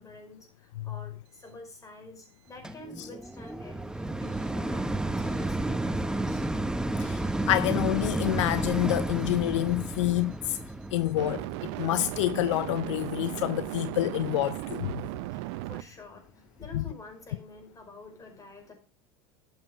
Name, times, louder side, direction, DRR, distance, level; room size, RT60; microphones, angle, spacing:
voice 1, 0.0-6.4 15.3-18.7, left 2 dB, 20° left, 5.1 m, -48 dB
sound 1, 2.6-13.9 14.5-14.6, right 2 dB, 5° right, 0.8 m, -32 dB
sound 2, 6.3-6.5 11.2-15.8, right 18 dB, 65° right, 0.6 m, -36 dB
voice 2, 7.0-10.6 10.9-11.4 11.8-14.9 16.7-16.8, left 15 dB, 75° left, 0.6 m, -27 dB
12.0 x 7.3 x 5.0 m
hypercardioid pair, 90°, 16 cm